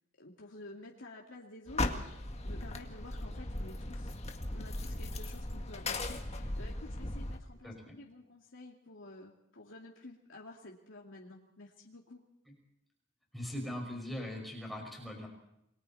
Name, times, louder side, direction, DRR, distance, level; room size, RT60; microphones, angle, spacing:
voice 1, 0.2-2.1 2.4-4.1 4.5-12.2, left 2 dB, 80° left, -2 dB, 2.5 m, -51 dB
sound 1, 1.7-7.4, left 2 dB, 35° left, 1.9 m, -37 dB
voice 2, 7.6-8.0 12.5-12.6 13.3-15.3, left 1 dB, ahead, 0 dB, 5.8 m, -40 dB
28.5 x 22.5 x 4.3 m, 0.80 s
head